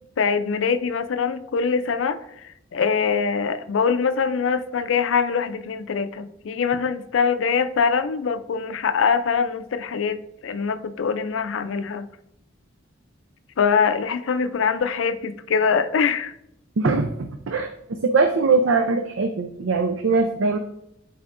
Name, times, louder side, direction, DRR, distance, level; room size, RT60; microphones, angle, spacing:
voice 1, 0.2-2.2 2.7-12.1 13.6-16.3, left 6 dB, 85° left, 0.4 m, -23 dB
voice 2, 16.8-20.6, right 4 dB, 85° right, 0.5 m, -21 dB
11.0 x 4.3 x 2.5 m
head